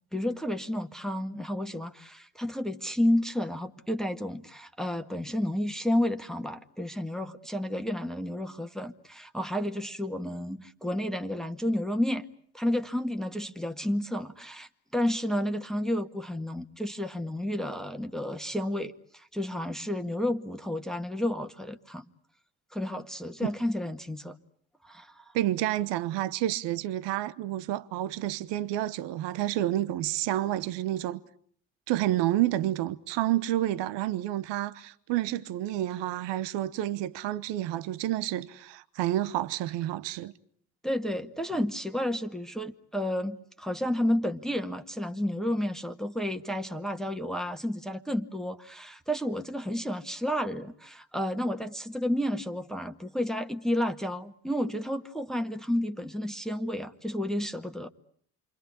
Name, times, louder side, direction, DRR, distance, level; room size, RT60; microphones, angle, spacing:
voice 1, 0.1-12.2 12.5-22.0 22.7-24.3 24.8-25.2 40.8-57.9, left 1 dB, ahead, 1.8 m, -31 dB
voice 2, 25.3-31.2 31.9-40.3, right 14 dB, 65° right, 1.1 m, -29 dB
29.0 x 24.5 x 8.4 m
hypercardioid pair, 50°, 46 cm